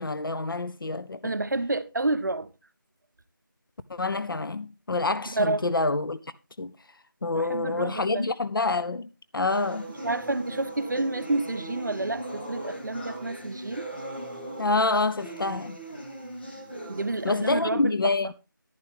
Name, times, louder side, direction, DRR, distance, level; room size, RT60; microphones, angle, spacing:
voice 1, 0.0-1.3 3.9-6.2 6.6-6.7 7.2-9.9 14.6-15.8 17.2-18.3, left 3 dB, 75° left, 0.6 m, -27 dB
voice 2, 1.2-2.5 5.2-5.6 7.3-8.3 10.0-13.9 16.9-17.8, right 2 dB, 60° right, 0.8 m, -29 dB
sound 1, 9.5-17.5, right 1 dB, 30° left, 2.0 m, -39 dB
11.0 x 10.5 x 3.4 m
figure-of-eight pair, 175°, 11 cm